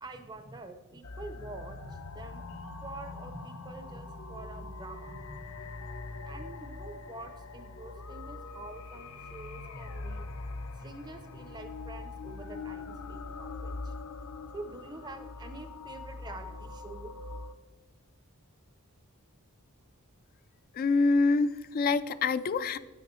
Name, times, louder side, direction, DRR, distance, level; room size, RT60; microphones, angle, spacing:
voice 1, 0.0-2.4 2.8-5.5 6.2-10.2 10.8-13.9 14.5-17.2, right 2 dB, 20° right, 7 dB, 0.5 m, -46 dB
sound 1, 1.0-17.5, left 3 dB, 70° left, 0.7 m, -42 dB
voice 2, 20.8-22.8, left 3 dB, 40° left, 14 dB, 0.3 m, -26 dB
9.3 x 8.5 x 3.1 m, 1.3 s
head